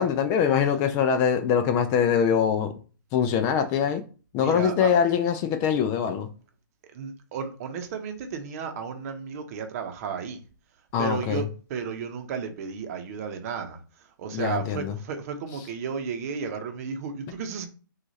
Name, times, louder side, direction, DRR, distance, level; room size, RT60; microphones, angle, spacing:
voice 1, 0.0-2.7 3.1-4.0 4.3-6.3 10.9-11.4 14.3-14.9, left 7 dB, 25° left, 0.4 m, -23 dB
voice 2, 4.4-4.9 6.9-10.4 11.0-13.8 14.2-17.7, right 6 dB, 45° right, 0.8 m, -33 dB
6.0 x 2.4 x 2.8 m
hypercardioid pair, 135°, 11 cm